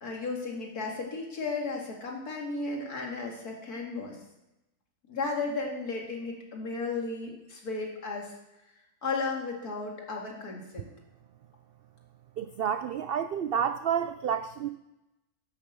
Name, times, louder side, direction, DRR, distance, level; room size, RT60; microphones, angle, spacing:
voice 1, 0.0-4.2 5.1-8.3 9.0-10.9, left 3 dB, 85° left, 0 dB, 2.8 m, -34 dB
voice 2, 12.4-14.7, right 8 dB, 80° right, 10 dB, 0.5 m, -30 dB
11.0 x 6.8 x 7.6 m, 0.93 s
omnidirectional pair, 1.6 m